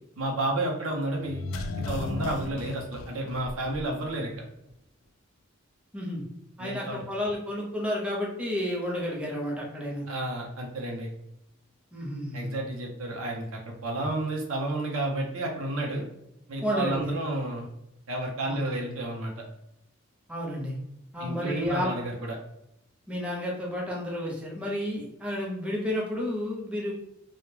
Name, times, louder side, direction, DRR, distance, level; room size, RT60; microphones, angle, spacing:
voice 1, 0.2-1.5 1.9-4.3 6.6-7.0 10.1-11.1 12.3-16.1 16.5-17.7 18.1-19.4 21.2-22.4, right 1 dB, 75° right, 1 dB, 0.6 m, -31 dB
sound 1, 1.2-4.1 4.3-4.4, left 2 dB, 80° left, 0.3 m, -35 dB
voice 2, 5.9-6.2 6.6-10.1 11.9-12.6 14.0-14.1 16.6-17.2 18.5-18.7 20.3-20.8 21.1-21.9 23.1-26.9, left 1 dB, 5° right, -3 dB, 0.5 m, -31 dB
2.1 x 2.1 x 3.0 m, 0.81 s
head